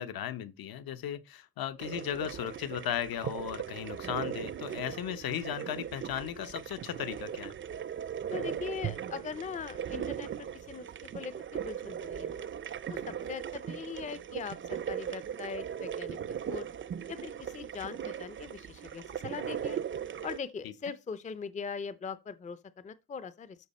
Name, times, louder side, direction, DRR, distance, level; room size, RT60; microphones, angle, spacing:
voice 1, 0.0-7.5 20.6-20.7, left 10 dB, 65° left, 1.0 m, -36 dB
sound 1, 1.8-20.4, right 9 dB, 35° right, 0.5 m, -38 dB
voice 2, 8.3-10.9 11.1-12.4 12.9-16.2 16.5-16.7 17.1-19.8 20.2-23.6, left 6 dB, 20° left, 0.5 m, -41 dB
12.5 x 5.6 x 4.2 m
cardioid pair, 155°, 38 cm